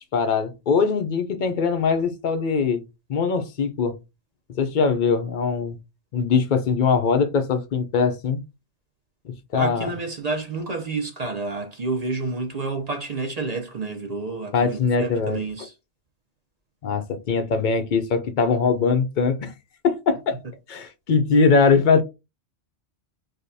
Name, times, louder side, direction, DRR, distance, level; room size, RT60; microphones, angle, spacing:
voice 1, 0.1-2.8 3.1-4.0 4.6-5.8 6.1-8.4 9.2-9.9 14.5-15.4 16.8-19.5 19.8-20.4 20.7-22.0, left 5 dB, 55° left, 0.6 m, -21 dB
voice 2, 9.5-15.7, right 3 dB, 45° right, 0.6 m, -29 dB
4.8 x 2.2 x 2.6 m
omnidirectional pair, 1.2 m